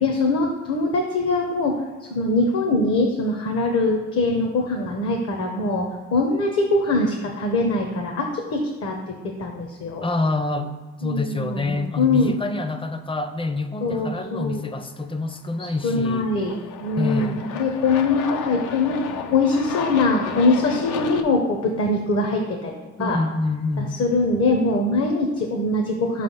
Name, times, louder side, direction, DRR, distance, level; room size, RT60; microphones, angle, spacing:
voice 1, 0.0-10.1 11.0-12.4 13.8-14.6 15.8-16.5 16.8-23.2 23.8-26.2, left 2 dB, 55° left, 2 dB, 0.8 m, -23 dB
voice 2, 10.0-10.7 11.0-16.3 17.0-17.4 23.0-24.0, left 2 dB, 20° left, 8 dB, 0.5 m, -27 dB
Aircraft, 15.5-21.2, left 7 dB, 80° left, 0.5 m, -33 dB
5.1 x 3.3 x 5.5 m, 1.3 s
cardioid pair, 90°, 30 cm